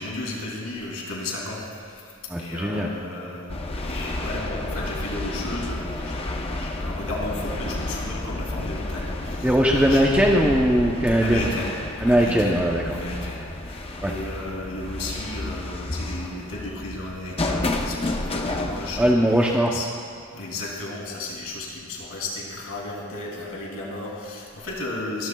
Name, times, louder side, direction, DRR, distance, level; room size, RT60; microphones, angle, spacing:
voice 1, 0.0-2.0 2.4-10.0 11.2-11.7 12.1-12.6 12.9-19.2 19.7-19.9 20.3-25.3, left 2 dB, 75° left, -2 dB, 3.0 m, -34 dB
voice 2, 2.3-2.9 9.4-11.5 12.0-13.0 14.0-14.1 19.0-19.8, equal, 5° right, -2 dB, 0.7 m, -20 dB
sound 1, 3.5-19.1, left 2 dB, 25° left, 0.7 m, -31 dB
23.0 x 13.5 x 2.3 m, 2.2 s
head